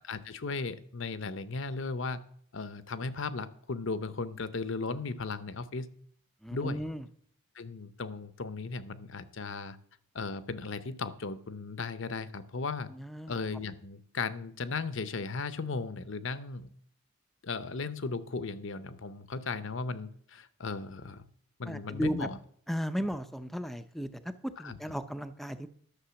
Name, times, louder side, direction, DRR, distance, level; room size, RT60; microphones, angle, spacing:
voice 1, 0.0-2.2 2.5-5.9 6.5-6.8 7.5-9.8 10.1-12.9 13.3-16.7 17.4-21.2 21.6-22.4 24.6-24.8, left 4 dB, 60° left, 14 dB, 0.7 m, -36 dB
voice 2, 6.4-7.1 12.9-13.4 21.7-22.3 22.7-25.7, equal, ahead, 11 dB, 0.5 m, -35 dB
11.5 x 6.6 x 6.9 m, 0.62 s
head